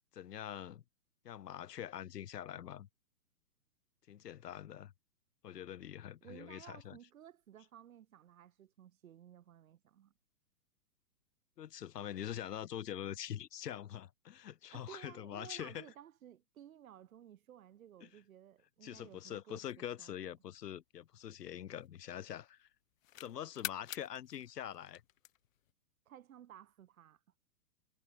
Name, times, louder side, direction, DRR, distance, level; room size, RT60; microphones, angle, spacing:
voice 1, 0.1-0.8 1.2-2.9 4.1-4.9 5.4-7.0 11.6-15.9 18.0-18.1 18.8-22.7 23.2-25.0, left 10 dB, 80° left, 1.2 m, -44 dB
voice 2, 6.2-10.1 14.7-19.6 20.0-20.3 26.1-27.2, right 10 dB, 60° right, 4.4 m, -56 dB
sound 1, 20.6-22.3 22.7-25.7, left 13 dB, 55° left, 0.5 m, -47 dB
hypercardioid pair, 160°, 47 cm